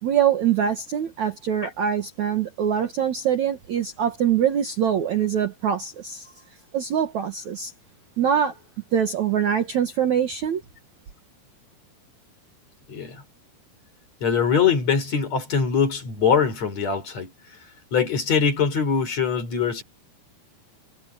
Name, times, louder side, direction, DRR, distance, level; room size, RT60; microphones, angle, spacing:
voice 1, 0.0-6.3 6.7-7.7 8.2-8.6 8.9-10.6, right 9 dB, 60° right, 2.2 m, -23 dB
voice 2, 12.9-13.2 14.2-17.3 17.9-19.8, left 6 dB, 40° left, 4.9 m, -22 dB
omnidirectional pair, 4.8 m